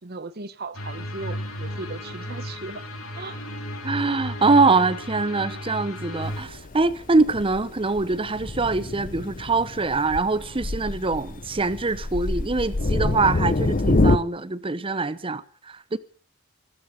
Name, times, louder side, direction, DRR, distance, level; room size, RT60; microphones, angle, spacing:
voice 1, 0.0-2.9 3.1-3.4, right 3 dB, 45° right, 1.0 m, -37 dB
sound 1, 0.7-6.4, equal, 75° left, 3.6 m, -34 dB
sound 2, 1.6-6.6, right 1 dB, 75° right, 6.3 m, -54 dB
voice 2, 3.8-16.0, right 3 dB, 25° right, 0.8 m, -23 dB
Thunder, 6.2-14.2, left 2 dB, 40° left, 0.8 m, -26 dB
14.5 x 13.5 x 6.6 m
head